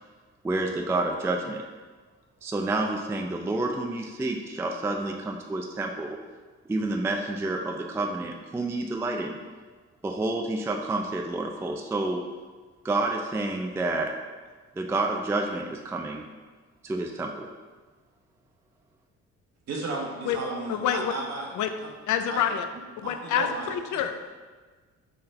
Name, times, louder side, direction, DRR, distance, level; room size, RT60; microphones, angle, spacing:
voice 1, 0.4-1.6 2.4-6.2 6.7-9.4 10.0-12.2 12.8-14.1 14.8-16.2 16.8-17.5, right 2 dB, 10° right, 2 dB, 0.3 m, -29 dB
voice 2, 19.7-21.5 21.8-21.9 22.3-22.4 23.0-23.7, right 3 dB, 60° right, -2 dB, 1.2 m, -34 dB
voice 3, 20.7-21.1 21.6-21.7 22.1-22.7 23.0-24.1, left 9 dB, 75° left, 8 dB, 0.5 m, -27 dB
4.2 x 4.0 x 3.2 m, 1.4 s
cardioid pair, 90°, 30 cm